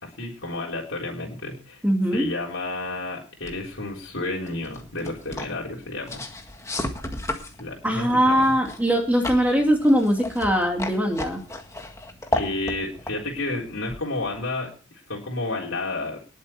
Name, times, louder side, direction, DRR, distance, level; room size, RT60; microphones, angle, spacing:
voice 1, 0.0-1.8 2.1-6.3 7.6-8.6 12.3-14.7 15.1-16.2, left 2 dB, 60° left, -2 dB, 3.9 m, -31 dB
voice 2, 1.8-2.3 7.8-11.4, equal, 5° right, 1 dB, 2.4 m, -21 dB
sound 1, 3.4-14.5, left 1 dB, 15° left, 1.8 m, -35 dB
20.0 x 7.6 x 4.4 m, 0.35 s
head